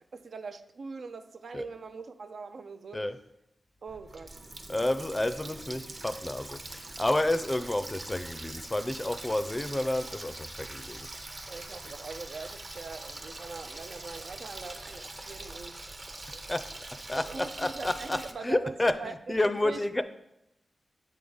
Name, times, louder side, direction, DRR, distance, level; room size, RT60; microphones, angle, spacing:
voice 1, 0.0-3.0 3.8-4.4 11.5-15.8 17.1-19.4 19.6-20.0, right 4 dB, 75° right, 8 dB, 0.4 m, -42 dB
Water tap faucet, 3.9-18.3, right 2 dB, 40° right, 0.7 m, -43 dB
voice 2, 4.7-11.1 16.5-16.6 17.1-20.0, left 1 dB, 20° left, 10 dB, 0.4 m, -30 dB
8.0 x 3.5 x 3.9 m, 0.87 s
cardioid pair, 65°, 0 cm